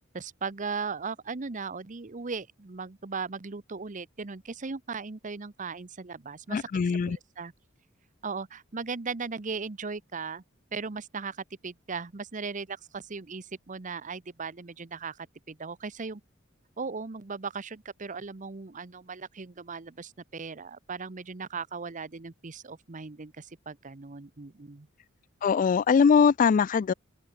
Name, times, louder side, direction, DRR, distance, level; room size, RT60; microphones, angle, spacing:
voice 1, 0.1-6.7 7.1-7.5 8.2-10.4 10.7-16.2 16.8-24.9, right 5 dB, 40° right, 0.8 m, -37 dB
voice 2, 6.5-7.2 25.4-26.9, left 6 dB, 40° left, 0.3 m, -22 dB
open air
head